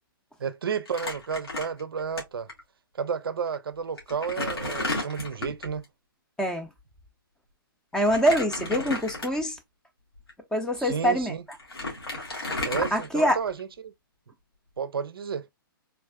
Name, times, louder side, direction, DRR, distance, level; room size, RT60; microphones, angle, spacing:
voice 1, 0.4-2.5 2.9-5.8 10.8-11.4 12.6-13.9 14.8-15.5, right 6 dB, 75° right, 0.4 m, -31 dB
Crumpling crinkling, 0.9-2.2 2.5-2.6 3.5-3.6 4.0-5.8 8.0-9.6 10.2-10.3 11.2-11.3 11.5-13.6, left 2 dB, 85° left, 1.6 m, -33 dB
voice 2, 7.9-9.6 10.5-11.3 12.9-13.4, equal, 5° left, 0.6 m, -24 dB
3.4 x 2.4 x 2.3 m
figure-of-eight pair, 125°, 12 cm